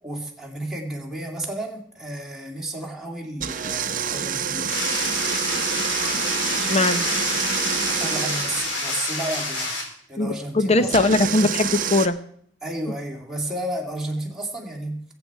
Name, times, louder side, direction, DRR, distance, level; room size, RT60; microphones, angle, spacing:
voice 1, 0.0-4.7 7.9-10.9 12.6-15.1, right 1 dB, 5° right, -1 dB, 2.4 m, -32 dB
sound 1, 3.4-8.8 10.9-12.1, right 8 dB, 45° right, 0.8 m, -27 dB
sound 2, 4.7-9.8, left 2 dB, 70° left, 3.6 m, -28 dB
voice 2, 6.6-7.0 10.2-12.1, left 2 dB, 35° left, 11 dB, 0.9 m, -20 dB
22.0 x 8.1 x 4.7 m, 0.63 s
head